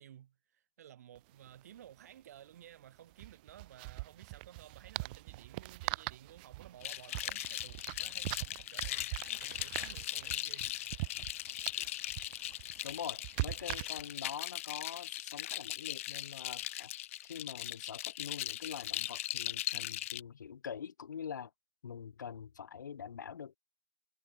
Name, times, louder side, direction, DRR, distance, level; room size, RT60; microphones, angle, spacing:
voice 1, 0.0-11.1 11.7-11.9, right 10 dB, 45° right, 4.2 m, -55 dB
sound 1, 1.2-1.3 1.5-1.6 3.1-14.3, right 24 dB, 25° right, 0.5 m, -42 dB
sound 2, 6.8-20.2, left 14 dB, 40° left, 1.9 m, -39 dB
voice 2, 12.8-16.9 17.2-21.5 21.8-23.6, left 7 dB, 60° left, 0.9 m, -44 dB
figure-of-eight pair, 140°, 11 cm